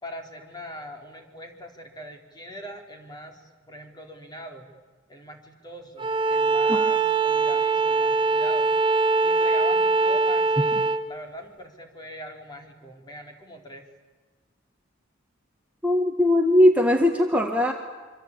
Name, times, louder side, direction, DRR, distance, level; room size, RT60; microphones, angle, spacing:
voice 1, 0.0-4.7 5.1-8.7 9.2-13.9, equal, 20° left, 3 dB, 4.0 m, -41 dB
Bowed string instrument, 6.0-11.0, right 4 dB, 25° right, 1.3 m, -22 dB
voice 2, 15.8-17.7, left 1 dB, 10° right, 2 dB, 1.7 m, -19 dB
26.0 x 25.5 x 8.8 m, 1.4 s
head